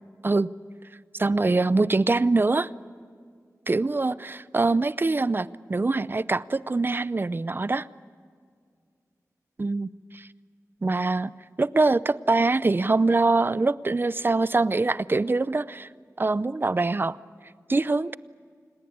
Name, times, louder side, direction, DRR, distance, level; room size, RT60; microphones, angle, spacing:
voice 1, 1.2-2.7 3.7-7.9 9.6-10.3 10.8-11.3 11.6-15.9 16.2-17.2 17.7-18.2, right 3 dB, 35° right, 18 dB, 0.5 m, -24 dB
28.0 x 19.5 x 8.7 m, 2.2 s
wide cardioid pair, 90°, 6 cm